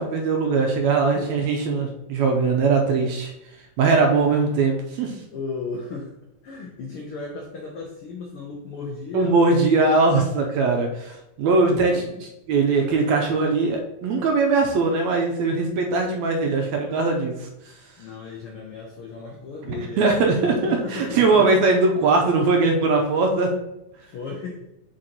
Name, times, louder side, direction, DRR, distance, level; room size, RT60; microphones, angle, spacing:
voice 1, 0.0-3.3 3.8-5.1 9.1-11.9 12.5-17.5 19.7-23.5, right 3 dB, 75° right, 2 dB, 1.8 m, -20 dB
voice 2, 5.3-6.1 6.4-9.3 11.6-12.2 18.0-21.5 24.1-24.7, left 4 dB, 80° left, -1 dB, 1.2 m, -35 dB
7.6 x 4.4 x 2.9 m, 0.88 s
omnidirectional pair, 3.6 m